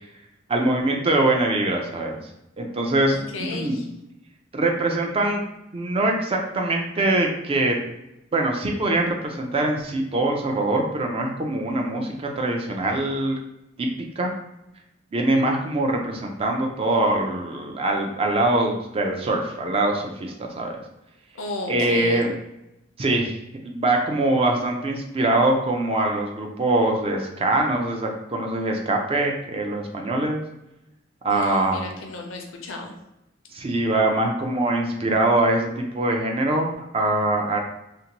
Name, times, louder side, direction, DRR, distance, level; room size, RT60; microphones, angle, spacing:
voice 1, 0.5-2.2 2.6-3.8 4.5-5.4 5.7-7.8 8.3-13.4 13.8-13.9 14.2-14.3 15.1-20.8 21.7-22.3 23.0-23.4 23.6-30.4 31.2-31.8 33.5-37.6, right 2 dB, 30° right, 1 dB, 0.4 m, -23 dB
voice 2, 3.1-3.9 21.3-22.2 31.3-32.9, left 2 dB, 75° left, 2 dB, 0.5 m, -34 dB
2.6 x 2.1 x 2.8 m, 0.88 s
head